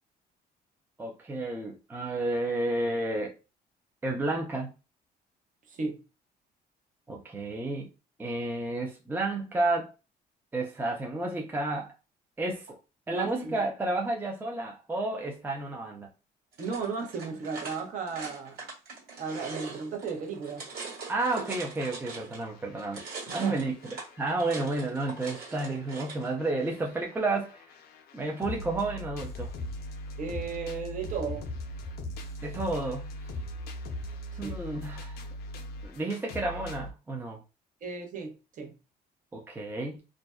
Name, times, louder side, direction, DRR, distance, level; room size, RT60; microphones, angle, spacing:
voice 1, 1.0-3.4 4.0-4.7 7.1-7.9 8.2-9.9 10.5-11.9 12.4-12.7 13.1-16.1 21.1-23.0 23.3-27.6 28.1-29.5 32.4-33.1 34.4-35.2 35.8-37.4 39.3-40.0, right 2 dB, 10° right, 0.5 m, -31 dB
voice 2, 5.7-6.0 13.1-13.6 16.6-18.6 19.2-20.7 23.3-23.6 30.2-31.5 34.4-34.6 37.8-38.7, right 5 dB, 50° right, 0.9 m, -35 dB
sound 1, 16.5-22.5 22.8-26.3, right 4 dB, 70° right, 1.5 m, -42 dB
sound 2, 22.4-24.7 25.1-36.9, left 1 dB, 65° left, 0.5 m, -40 dB
2.5 x 2.1 x 2.2 m
cardioid pair, 110°, 17 cm